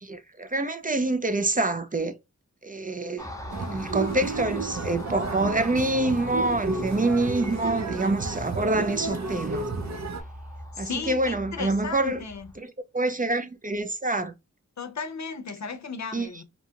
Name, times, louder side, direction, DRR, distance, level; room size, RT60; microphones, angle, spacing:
voice 1, 0.0-2.2 2.6-3.3 3.7-9.7 10.8-12.2 12.6-14.3 16.1-16.3, right 2 dB, 30° right, 0.4 m, -26 dB
Car passing by, 3.2-12.6, left 1 dB, 10° left, 0.7 m, -41 dB
sound 1, 3.5-10.2, right 4 dB, 65° right, 0.7 m, -32 dB
voice 2, 10.7-12.5 14.8-16.4, left 5 dB, 65° left, 0.6 m, -35 dB
2.8 x 2.2 x 2.8 m
wide cardioid pair, 75°, 30 cm